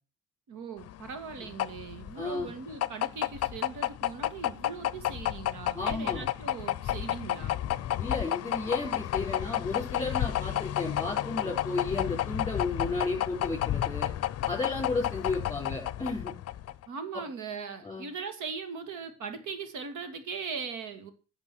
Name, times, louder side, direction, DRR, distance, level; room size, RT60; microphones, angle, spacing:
voice 1, 0.5-7.6 16.9-21.1, right 5 dB, 80° right, 9 dB, 2.4 m, -39 dB
sound 1, 0.8-16.9, left 12 dB, 55° left, 0.6 m, -31 dB
voice 2, 2.1-2.5 5.7-6.2 8.0-14.1 14.5-16.3 17.8-18.0, left 3 dB, 10° left, -4 dB, 4.6 m, -33 dB
11.5 x 6.7 x 6.4 m, 0.34 s
cardioid pair, 90°, 30 cm